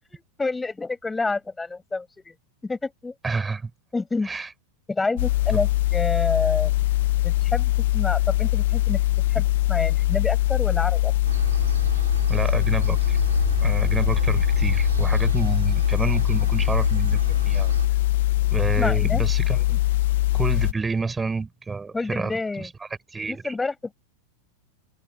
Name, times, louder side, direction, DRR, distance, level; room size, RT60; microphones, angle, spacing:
voice 1, 0.1-2.3 2.6-3.1 3.9-4.3 4.9-6.7 7.2-9.0 9.3-11.1 18.8-19.2 21.9-22.7 23.3-23.9, left 3 dB, 10° left, 6.1 m, -28 dB
voice 2, 3.2-3.7 4.2-4.5 5.5-5.6 12.3-13.2 13.6-17.7 18.5-19.8 20.3-22.7 23.1-23.5, right 4 dB, 10° right, 5.0 m, -29 dB
sound 1, 5.2-20.7, left 16 dB, 55° left, 0.9 m, -22 dB
sound 2, 11.2-17.9, right 8 dB, 65° right, 3.6 m, -31 dB
figure-of-eight pair, 90°, 0 cm